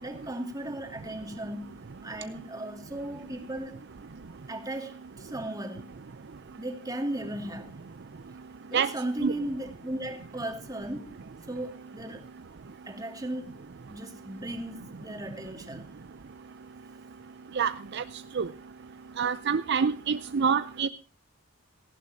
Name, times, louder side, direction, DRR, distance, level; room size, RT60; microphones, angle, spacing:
voice 1, 0.0-3.8 4.5-5.9 6.6-7.7 8.7-11.2 11.5-12.3 12.9-13.5 13.9-15.9, right 1 dB, 20° right, 2.3 m, -36 dB
voice 2, 17.6-18.0 18.3-18.5 19.2-20.9, right 6 dB, 55° right, 0.6 m, -26 dB
17.5 x 15.0 x 2.8 m
head